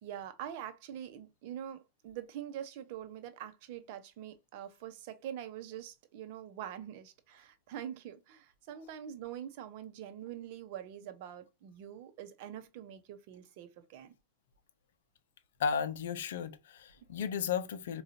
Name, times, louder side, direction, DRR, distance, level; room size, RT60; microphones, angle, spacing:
voice 1, 0.0-14.1, right 10 dB, 50° right, 0.7 m, -44 dB
voice 2, 15.6-18.0, left 6 dB, 60° left, 0.5 m, -34 dB
4.8 x 2.3 x 2.7 m
figure-of-eight pair, 90°, 0 cm